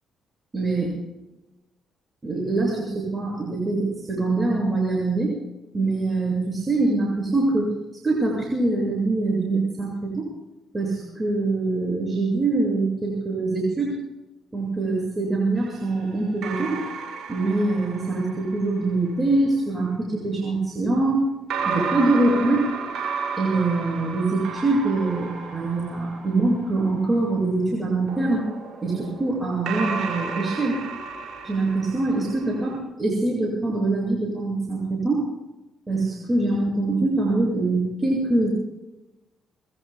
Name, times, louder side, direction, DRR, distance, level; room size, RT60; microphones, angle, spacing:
voice 1, 0.5-0.9 2.2-5.3 5.7-7.7 8.0-10.3 10.7-13.9 14.5-16.8 17.3-21.3 21.7-22.7 23.4-28.4 28.8-30.8 31.4-35.2 35.9-38.5, right 2 dB, 25° right, -3 dB, 7.6 m, -24 dB
sound 1, 15.6-19.0 21.5-26.9 28.1-32.7, right 5 dB, 80° right, 5.9 m, -33 dB
24.5 x 23.0 x 2.4 m, 1.0 s
cardioid pair, 90°, 0 cm